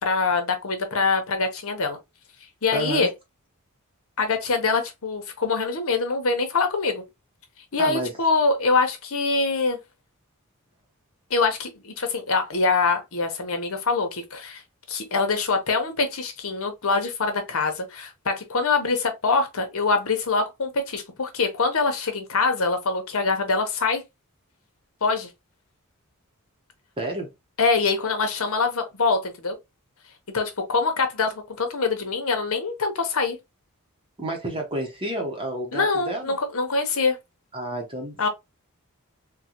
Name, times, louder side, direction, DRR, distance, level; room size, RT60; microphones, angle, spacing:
voice 1, 0.0-2.0 2.6-3.1 4.2-7.0 7.7-9.8 11.3-14.6 14.9-24.0 25.0-25.3 27.6-29.6 30.3-33.4 35.7-37.2 38.2-38.3, left 4 dB, 65° left, 0.9 m, -24 dB
voice 2, 2.7-3.1 7.8-8.1 27.0-27.3 34.2-36.3 37.5-38.3, right 1 dB, 25° right, 0.8 m, -30 dB
3.8 x 2.2 x 2.9 m
head